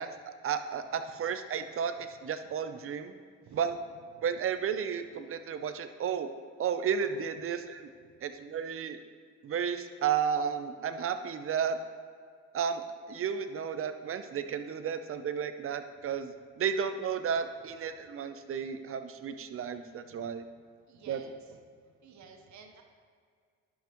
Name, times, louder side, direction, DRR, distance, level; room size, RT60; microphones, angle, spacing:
voice 1, 0.0-3.1 3.5-3.8 4.2-6.3 6.6-7.9 8.2-9.0 9.4-11.8 12.5-20.4 21.1-21.2, right 7 dB, 45° right, 9 dB, 0.6 m, -33 dB
voice 2, 20.9-21.3 22.0-22.8, right 5 dB, 70° right, 4 dB, 1.0 m, -53 dB
11.0 x 5.7 x 3.0 m, 2.1 s
cardioid pair, 90°, 30 cm